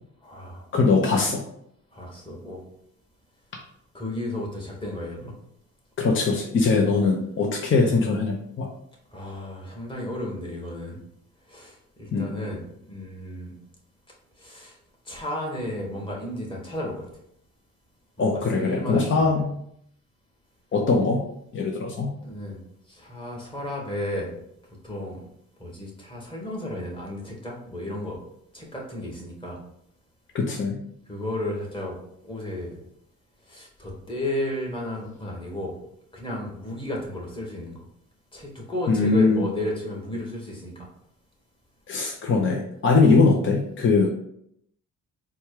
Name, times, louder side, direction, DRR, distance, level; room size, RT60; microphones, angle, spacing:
voice 1, 0.2-0.7 1.9-2.6 3.9-5.3 9.1-11.0 11.5-13.5 14.4-14.7 15.1-17.0 18.2-19.4 22.2-22.6 22.9-24.4 24.8-25.2 25.6-28.2 28.5-29.6 31.1-32.0 32.2-32.8 33.5-35.7 36.1-37.8 38.3-40.9 44.0-44.1, left 1 dB, 15° left, -2 dB, 1.6 m, -33 dB
voice 2, 0.7-1.4 6.0-8.7 12.1-12.3 18.2-19.5 20.7-21.2 21.5-22.1 30.3-30.8 38.9-39.4 41.9-44.1, left 4 dB, 40° left, 1 dB, 0.7 m, -21 dB
4.2 x 2.4 x 4.8 m, 0.72 s
cardioid pair, 90°, 30 cm